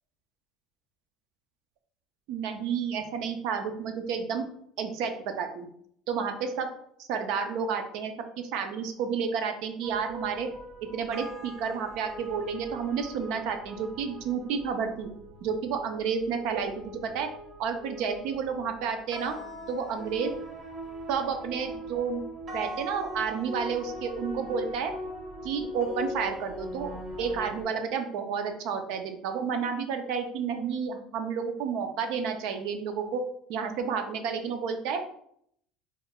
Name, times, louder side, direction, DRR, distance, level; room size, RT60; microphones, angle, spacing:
voice 1, 2.3-4.5 4.8-5.7 6.1-6.7 7.0-10.5 10.9-15.1 15.4-16.7 17.0-17.3 17.6-19.3 19.7-20.3 21.1-22.2 22.5-24.9 25.4-26.9 27.2-33.2 33.5-35.0, right 6 dB, 70° right, 6 dB, 0.5 m, -31 dB
sound 1, 9.8-27.6, equal, 45° right, 1.3 m, -41 dB
4.3 x 2.4 x 2.3 m, 0.69 s
supercardioid pair, 100°, 0 cm